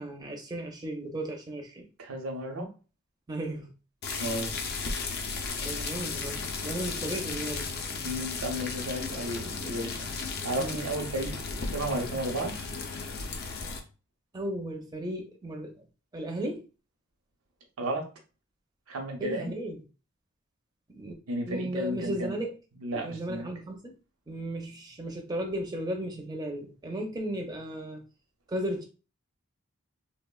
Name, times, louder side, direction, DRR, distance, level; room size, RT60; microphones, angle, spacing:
voice 1, 0.0-1.9 3.3-3.7 5.4-7.7 10.6-10.8 14.3-15.7 16.1-16.6 19.2-19.8 20.9-21.1 21.5-22.5 22.9-23.9 24.3-28.0 28.5-28.8, right 1 dB, 20° right, 0.4 m, -35 dB
voice 2, 2.0-2.7 4.2-4.5 8.0-11.4 11.7-12.5 17.8-18.1 18.9-19.5 21.3-22.3 22.8-23.5, right 1 dB, 85° right, 0.7 m, -33 dB
sound 1, 4.0-13.8, left 4 dB, 45° left, 0.4 m, -35 dB
3.2 x 2.0 x 2.2 m
head